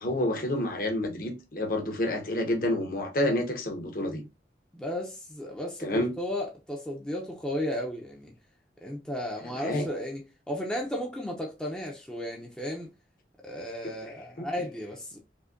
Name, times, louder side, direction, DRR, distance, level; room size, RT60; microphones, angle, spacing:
voice 1, 0.0-4.2 5.8-6.1 9.6-9.9 14.4-14.5, left 1 dB, 50° left, 0.8 m, -29 dB
voice 2, 4.7-8.3 8.8-10.2 10.5-12.9 13.4-15.2, left 1 dB, 5° left, 0.4 m, -34 dB
4.9 x 2.1 x 2.4 m
head